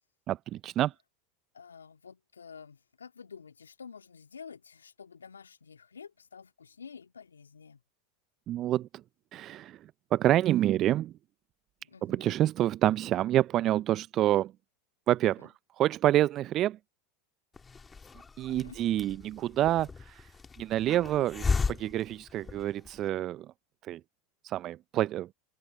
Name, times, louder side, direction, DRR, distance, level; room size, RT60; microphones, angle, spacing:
voice 1, 0.3-0.9 8.5-8.9 9.3-9.8 10.1-11.1 12.0-14.5 15.1-16.8 18.4-19.9 20.6-23.5 23.9-24.0 24.4-25.3, right 13 dB, 40° right, 0.8 m, -27 dB
voice 2, 1.5-7.8 11.9-12.3 15.2-15.5 18.5-18.8, left 6 dB, 85° left, 2.2 m, -49 dB
Hiss, 17.5-23.0, left 4 dB, 20° left, 2.9 m, -36 dB
open air
hypercardioid pair, 85°, 0 cm